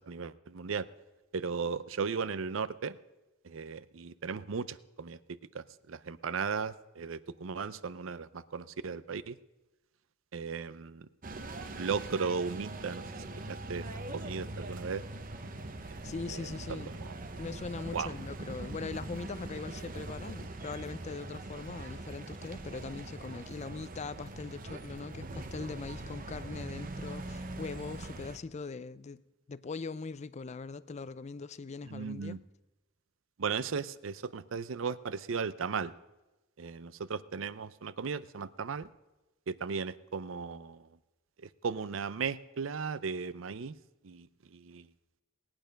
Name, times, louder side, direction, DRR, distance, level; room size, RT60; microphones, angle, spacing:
voice 1, 0.1-0.9 1.3-3.0 3.4-5.2 5.5-9.4 10.3-11.1 11.8-13.0 13.5-13.9 14.1-15.0 16.3-17.1 17.9-18.1 31.8-32.4 33.4-35.9 36.6-38.9 39.5-40.9 41.6-43.8 44.0-44.9, right 5 dB, 80° right, 0.6 m, -36 dB
sound 1, 11.2-28.4, right 2 dB, 45° right, 0.9 m, -42 dB
voice 2, 16.0-16.9 17.4-29.2 29.5-32.4, left 4 dB, 35° left, 0.4 m, -41 dB
20.0 x 8.9 x 5.2 m
head